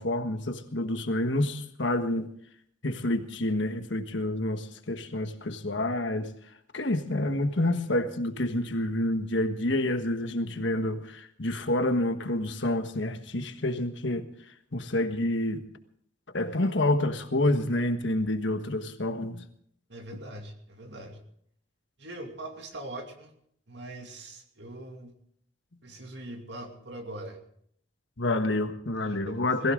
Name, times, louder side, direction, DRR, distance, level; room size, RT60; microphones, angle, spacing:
voice 1, 0.0-2.3 2.8-6.3 6.7-14.3 14.7-15.6 16.3-19.4 28.2-29.7, left 1 dB, 65° left, 1.5 m, -28 dB
voice 2, 19.9-21.2 22.0-23.3 23.7-25.1 25.8-27.4 29.0-29.7, right 1 dB, 60° right, 2.6 m, -42 dB
21.5 x 16.0 x 3.8 m
head